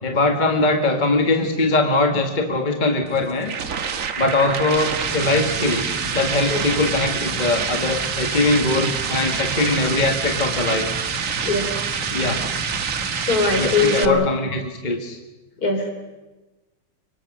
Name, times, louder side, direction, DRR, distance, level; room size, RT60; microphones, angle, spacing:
voice 1, 0.0-3.5 4.2-5.9 6.1-10.9 12.1-12.4 13.6-15.2, left 2 dB, 25° left, 4 dB, 1.7 m, -21 dB
sound 1, 3.1-14.1, right 6 dB, 50° right, 1.4 m, -26 dB
sound 2, 4.9-13.9, right 1 dB, ahead, 4.5 m, -35 dB
voice 2, 13.3-14.4 15.6-15.9, left 3 dB, 55° left, 5 dB, 3.9 m, -20 dB
25.5 x 24.0 x 6.2 m, 1.1 s
omnidirectional pair, 2.0 m